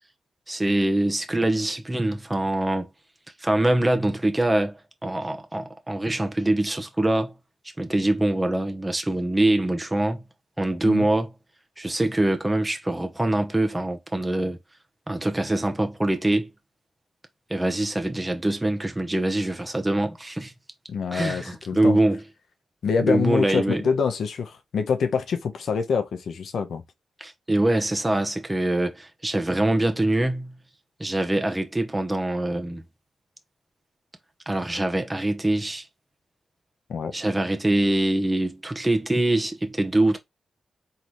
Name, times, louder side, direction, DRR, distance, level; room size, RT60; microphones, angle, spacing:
voice 1, 0.5-2.9 3.4-7.3 7.8-10.2 10.6-11.3 11.8-14.6 15.1-16.5 17.5-20.5 21.1-22.2 23.0-23.8 27.2-30.6 31.0-32.8 34.5-35.9 37.1-40.2, right 1 dB, 15° right, 1.0 m, -24 dB
voice 2, 20.9-22.0 22.8-26.8 36.9-37.1, left 5 dB, 75° left, 0.9 m, -25 dB
3.9 x 3.3 x 3.0 m
cardioid pair, 55°, 0 cm